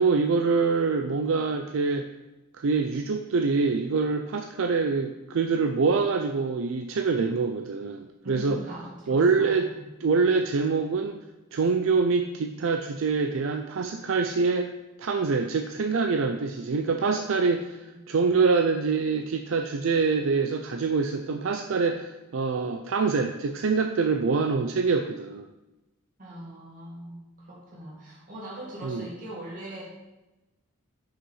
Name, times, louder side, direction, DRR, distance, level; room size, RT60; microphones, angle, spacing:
voice 1, 0.0-2.1 2.5-8.6 9.1-9.7 10.0-11.2 11.5-14.7 15.0-25.5 28.8-29.1, right 4 dB, 65° right, 6 dB, 0.4 m, -25 dB
voice 2, 8.2-9.9 17.9-18.0 26.2-27.2 27.5-29.9, equal, 40° right, -5 dB, 2.4 m, -41 dB
5.9 x 5.6 x 5.5 m, 1.0 s
head